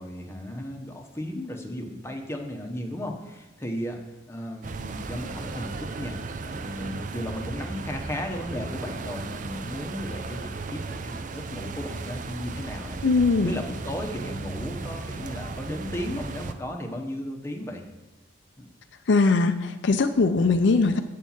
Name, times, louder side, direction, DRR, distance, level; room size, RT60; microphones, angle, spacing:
voice 1, 0.0-4.0 4.3-13.0 13.4-17.8 18.6-18.7, left 1 dB, 15° left, 2 dB, 0.9 m, -35 dB
sound 1, 4.6-16.5, right 3 dB, 40° right, 0.4 m, -36 dB
voice 2, 13.0-13.6 19.1-21.0, left 3 dB, 65° left, 8 dB, 0.4 m, -21 dB
8.2 x 4.4 x 7.2 m, 1.1 s
head